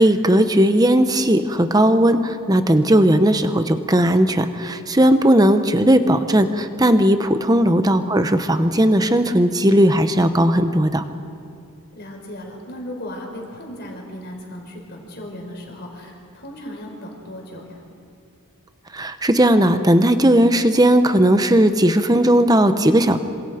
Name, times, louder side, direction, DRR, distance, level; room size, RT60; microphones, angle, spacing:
voice 1, 0.0-11.0 18.9-23.2, right 1 dB, 15° right, 9 dB, 0.9 m, -16 dB
voice 2, 11.9-17.8, left 1 dB, 50° left, 0 dB, 4.9 m, -36 dB
27.0 x 26.5 x 5.1 m, 2.4 s
head